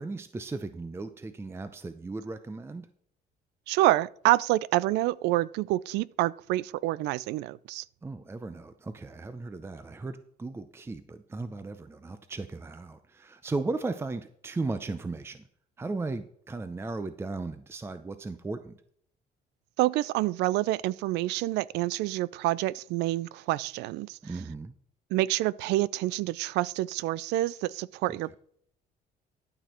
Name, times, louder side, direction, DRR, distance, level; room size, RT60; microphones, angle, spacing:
voice 1, 0.0-2.9 8.0-15.4 15.8-18.7 24.2-24.7, right 3 dB, 15° right, 0.6 m, -36 dB
voice 2, 3.7-7.8 19.8-24.2 25.1-28.4, right 16 dB, 85° right, 0.4 m, -27 dB
12.0 x 6.2 x 4.4 m
cardioid pair, 110°, 17 cm